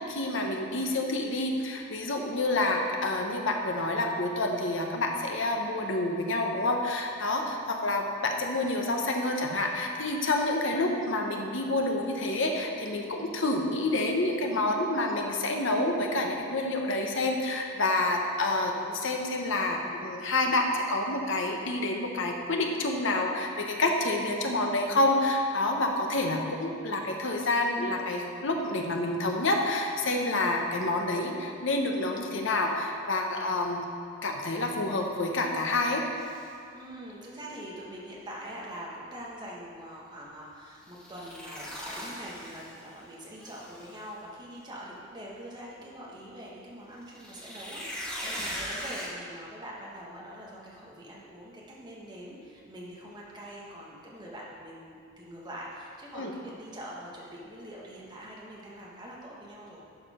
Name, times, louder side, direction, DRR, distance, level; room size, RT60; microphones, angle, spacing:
voice 1, 0.0-33.8 34.2-36.0 56.1-56.3, left 2 dB, 60° left, 2 dB, 1.0 m, -28 dB
sound 1, 36.2-36.5 40.9-42.9 43.4-44.0 47.1-49.1, equal, 5° left, 1.0 m, -39 dB
voice 2, 36.7-59.8, equal, 20° right, -5 dB, 1.5 m, -44 dB
11.5 x 5.0 x 5.0 m, 2.4 s
head